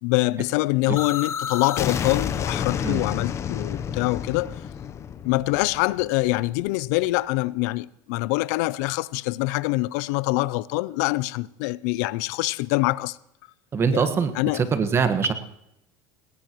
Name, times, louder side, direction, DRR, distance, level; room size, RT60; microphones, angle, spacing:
voice 1, 0.0-4.5 5.2-13.2 13.9-14.1 14.4-14.6, left 20 dB, 75° left, 0.5 m, -24 dB
sound 1, 1.0-6.7, left 8 dB, 35° left, 0.8 m, -30 dB
voice 2, 13.7-15.3, right 5 dB, 30° right, 1.4 m, -23 dB
19.0 x 17.0 x 3.1 m
supercardioid pair, 120°, 9 cm